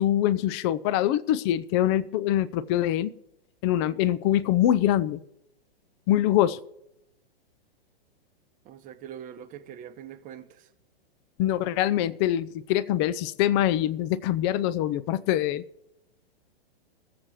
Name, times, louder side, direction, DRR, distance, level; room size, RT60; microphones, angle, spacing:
voice 1, 0.0-3.1 3.6-5.2 6.1-6.6 11.4-15.6, left 12 dB, 25° left, 0.4 m, -24 dB
voice 2, 8.6-10.7, right 9 dB, 25° right, 0.8 m, -43 dB
21.5 x 7.5 x 3.2 m
hypercardioid pair, 125°, 31 cm